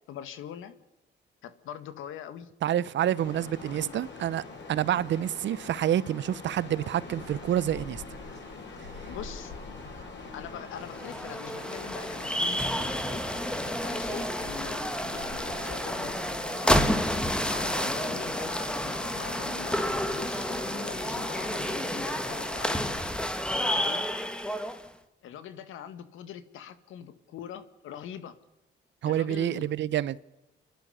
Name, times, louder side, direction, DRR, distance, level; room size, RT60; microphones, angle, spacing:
voice 1, 0.1-0.7 1.4-2.5 3.7-4.0 9.1-9.5 10.3-13.2 13.6-14.8 15.1-16.2 16.6-22.8 23.5-24.1 25.2-28.4 29.0-29.7, left 9 dB, 85° left, 1.8 m, -43 dB
voice 2, 2.6-4.4 4.7-8.0 29.0-30.2, right 11 dB, 65° right, 0.8 m, -28 dB
sound 1, 3.1-23.0, left 3 dB, 65° left, 7.8 m, -43 dB
sound 2, 10.8-24.9, equal, 5° left, 1.7 m, -30 dB
28.5 x 11.5 x 9.8 m
cardioid pair, 90°, 20 cm